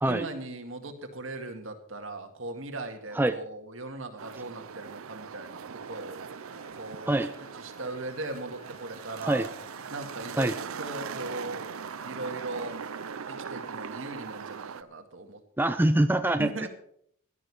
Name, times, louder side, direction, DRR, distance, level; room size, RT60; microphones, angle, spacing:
voice 1, 0.0-9.5 9.9-10.5 10.8-11.7 12.0-12.8 13.3-15.7 16.4-16.7, right 2 dB, 65° right, 5 dB, 2.0 m, -39 dB
sound 1, 4.2-14.8, right 6 dB, 85° right, 0.6 m, -40 dB
sound 2, 5.8-14.6, left 2 dB, 30° left, 2.0 m, -54 dB
voice 2, 15.6-16.7, right 1 dB, 10° right, 9 dB, 0.5 m, -24 dB
17.0 x 11.5 x 4.8 m, 0.66 s
head